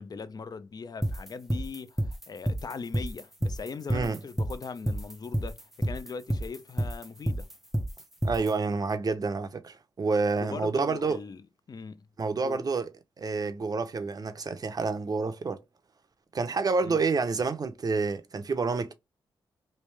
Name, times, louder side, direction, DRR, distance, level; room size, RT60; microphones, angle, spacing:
voice 1, 0.0-7.5 10.4-12.1 12.4-12.6 16.8-17.0, left 5 dB, 45° left, 0.5 m, -40 dB
sound 1, 1.0-8.5, right 1 dB, 5° right, 0.5 m, -29 dB
voice 2, 8.2-11.2 12.2-12.9 13.2-15.6 16.3-18.9, right 4 dB, 45° right, 0.7 m, -28 dB
3.3 x 2.6 x 3.2 m
cardioid pair, 55°, 9 cm